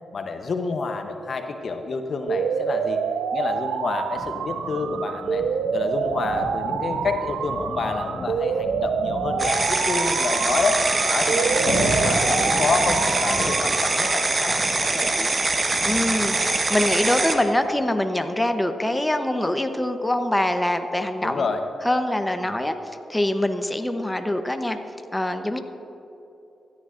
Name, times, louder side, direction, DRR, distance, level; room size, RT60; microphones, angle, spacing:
voice 1, 0.1-3.0 3.3-5.4 5.7-10.8 11.1-15.3 21.2-21.6 22.4-22.5, left 4 dB, 60° left, 6 dB, 0.8 m, -28 dB
sound 1, 2.3-14.3, right 7 dB, 80° right, 0.3 m, -27 dB
sound 2, 4.1-16.9 17.6-17.7, left 2 dB, 80° left, 1.4 m, -35 dB
sound 3, 9.4-17.4, right 2 dB, 40° right, 1.2 m, -23 dB
voice 2, 15.8-21.4 21.8-22.7 23.1-24.8 25.1-25.6, left 1 dB, 15° left, 7 dB, 0.8 m, -24 dB
16.0 x 10.5 x 2.5 m, 2.9 s
supercardioid pair, 45°, 0 cm